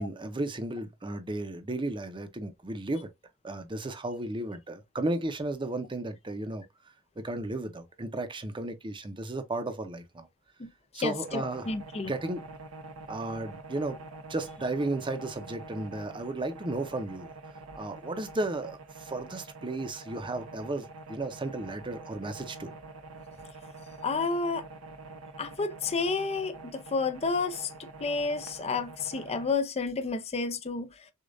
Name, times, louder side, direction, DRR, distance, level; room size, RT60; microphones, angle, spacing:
voice 1, 0.0-3.1 3.4-6.6 7.2-10.3 10.9-11.7 12.0-12.4 13.1-14.0 14.3-17.3 17.7-22.7, right 2 dB, 25° right, 0.7 m, -34 dB
voice 2, 11.0-12.1 24.0-24.6 25.4-30.9, left 4 dB, 30° left, 0.5 m, -30 dB
sound 1, 11.2-29.5, right 3 dB, 70° right, 0.8 m, -46 dB
6.4 x 2.4 x 2.6 m
head